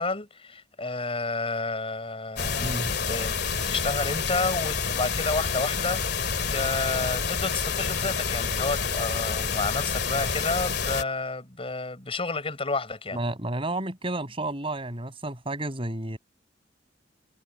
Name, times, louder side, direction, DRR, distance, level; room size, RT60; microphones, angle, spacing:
voice 1, 0.0-3.3 3.6-13.2, left 3 dB, 30° left, 5.8 m, -30 dB
sound 1, 2.4-11.0, left 5 dB, 65° left, 2.3 m, -28 dB
voice 2, 2.6-2.9 13.1-16.2, right 1 dB, 30° right, 7.7 m, -31 dB
head